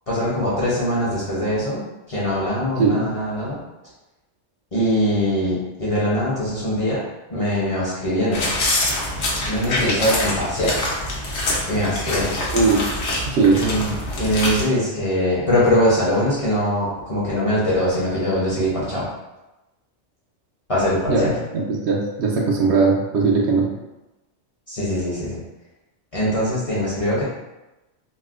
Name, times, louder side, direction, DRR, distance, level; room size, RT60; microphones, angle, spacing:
voice 1, 0.1-1.8 2.1-3.6 4.7-7.0 7.3-8.5 9.5-10.8 11.7-12.3 13.6-13.9 14.2-19.1 20.7-21.3 24.7-25.4 26.1-27.2, equal, 35° left, -8 dB, 0.7 m, -22 dB
sound 1, 8.3-14.6, left 1 dB, 70° left, 1.1 m, -25 dB
voice 2, 13.3-13.6 21.1-23.7, right 4 dB, 70° right, -1 dB, 0.8 m, -19 dB
4.1 x 2.1 x 2.4 m, 1.0 s
omnidirectional pair, 1.3 m